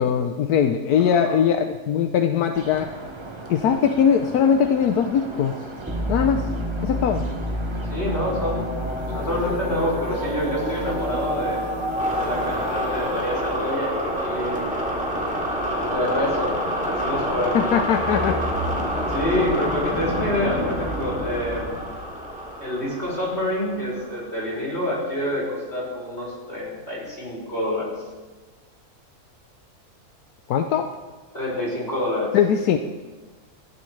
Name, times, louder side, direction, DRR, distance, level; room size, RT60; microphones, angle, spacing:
voice 1, 0.0-2.9 3.5-5.6 6.1-6.5 6.8-7.2 17.5-18.4 30.5-30.9 32.3-32.8, left 8 dB, 85° left, 6 dB, 1.2 m, -20 dB
voice 2, 1.0-1.4 7.9-8.7 9.1-11.6 12.2-13.9 14.2-14.6 15.9-16.6 16.9-17.7 19.1-21.8 22.6-27.9 31.3-32.3, left 1 dB, 45° left, -5 dB, 5.7 m, -27 dB
sound 1, 2.5-12.7, right 2 dB, 20° right, 0.9 m, -38 dB
sound 2, 5.9-24.3, equal, 5° right, 2.7 m, -27 dB
20.5 x 15.0 x 3.2 m, 1.3 s
omnidirectional pair, 1.6 m